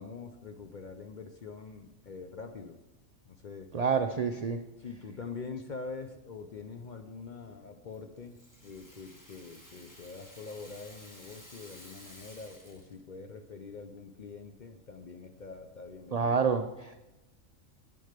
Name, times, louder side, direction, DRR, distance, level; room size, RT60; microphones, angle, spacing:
voice 1, 0.0-2.8 3.3-3.7 4.8-16.4, left 4 dB, 50° left, 7 dB, 0.6 m, -44 dB
voice 2, 3.7-4.6 16.1-16.9, right 5 dB, 80° right, 6 dB, 0.3 m, -28 dB
Rattle (instrument), 7.9-13.0, equal, 15° left, 1.4 m, -54 dB
8.7 x 6.5 x 6.6 m, 0.97 s
omnidirectional pair, 1.4 m